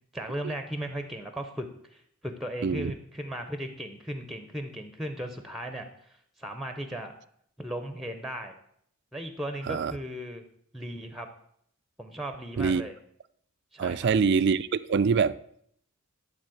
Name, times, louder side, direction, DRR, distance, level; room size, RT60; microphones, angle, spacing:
voice 1, 0.1-7.1 7.6-8.5 9.1-10.4 10.7-11.3 12.0-12.9 13.7-14.1, right 1 dB, ahead, 0.7 m, -37 dB
voice 2, 2.6-2.9 9.6-9.9 12.6-12.8 13.8-15.4, right 5 dB, 50° right, 0.3 m, -24 dB
12.0 x 4.1 x 7.7 m
head